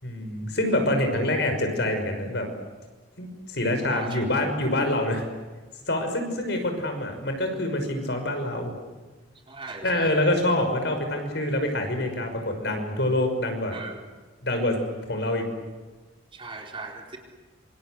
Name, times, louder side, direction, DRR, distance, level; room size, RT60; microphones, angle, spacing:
voice 1, 0.0-2.5 3.2-5.2 5.9-8.7 9.8-13.8 14.4-14.8 15.1-15.4, left 1 dB, 60° left, 5 dB, 5.8 m, -26 dB
voice 2, 3.9-4.2 9.5-10.1 13.7-14.0 16.3-17.2, right 3 dB, 25° right, 1 dB, 4.2 m, -38 dB
27.5 x 26.5 x 8.1 m, 1.3 s
head